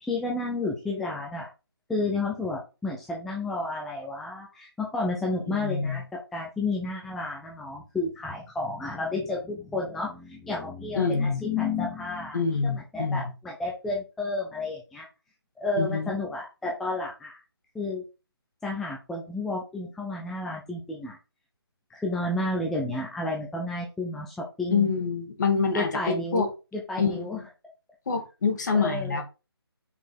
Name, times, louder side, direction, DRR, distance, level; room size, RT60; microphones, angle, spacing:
voice 1, 0.0-1.5 1.9-6.0 6.3-15.1 15.6-17.4 17.7-18.0 18.6-21.2 21.9-24.9 25.8-26.5 26.7-27.4 28.7-29.2, left 2 dB, ahead, 0.4 m, -31 dB
voice 2, 5.5-6.0 11.0-11.4 12.3-13.3 15.8-16.1 24.7-26.5 27.0-27.4 28.1-29.2, left 5 dB, 45° left, 1.7 m, -26 dB
5.8 x 4.5 x 4.4 m
figure-of-eight pair, 155°, 13 cm